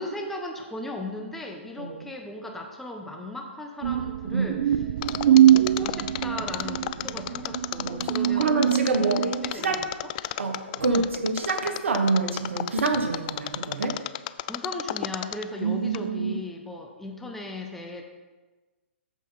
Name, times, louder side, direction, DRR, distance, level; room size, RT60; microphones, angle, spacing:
voice 1, 0.0-4.8 5.2-8.5 9.0-9.9 10.9-11.1 12.0-12.1 14.4-18.0, left 2 dB, 5° left, 1 dB, 0.9 m, -37 dB
sound 1, 3.8-9.5, right 11 dB, 55° right, 0.4 m, -23 dB
Mechanisms, 5.0-15.6 15.9-16.0, left 16 dB, 40° left, 0.3 m, -32 dB
voice 2, 7.8-9.3 9.5-9.9 10.4-14.0 15.6-16.4, right 4 dB, 75° right, 4 dB, 1.4 m, -27 dB
14.0 x 5.3 x 4.0 m, 1.3 s
hypercardioid pair, 130°, 7 cm